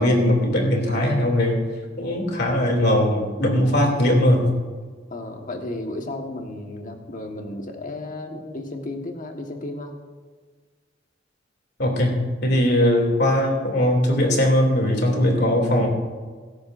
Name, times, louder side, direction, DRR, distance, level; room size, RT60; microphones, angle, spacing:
voice 1, 0.0-1.6 2.0-4.5 11.8-12.2 12.4-15.9, left 1 dB, 60° left, 2 dB, 2.7 m, -20 dB
voice 2, 5.1-9.9, left 2 dB, 45° left, 3 dB, 1.4 m, -33 dB
17.0 x 13.0 x 2.6 m, 1.5 s
head